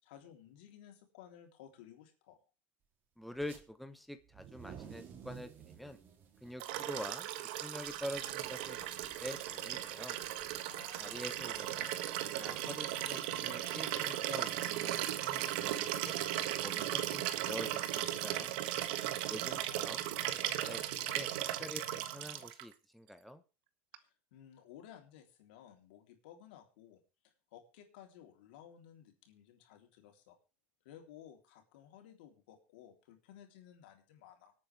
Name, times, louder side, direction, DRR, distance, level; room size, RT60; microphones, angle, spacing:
voice 1, 0.0-2.4 10.6-11.3 19.2-19.9 23.9-30.4 30.8-34.5, left 10 dB, 90° left, 4 dB, 3.5 m, -57 dB
voice 2, 3.2-6.0 6.4-7.3 7.6-10.2 11.0-16.2 16.6-18.5 19.3-20.8 21.1-21.3 21.6-23.4, equal, ahead, 8 dB, 1.1 m, -46 dB
sound 1, 3.3-3.6 4.2-12.7, right 7 dB, 40° right, 3.1 m, -56 dB
Liquid, 6.6-22.6 23.9-24.0, right 13 dB, 80° right, 1.4 m, -37 dB
25.0 x 8.7 x 3.4 m, 0.31 s
supercardioid pair, 135°, 5 cm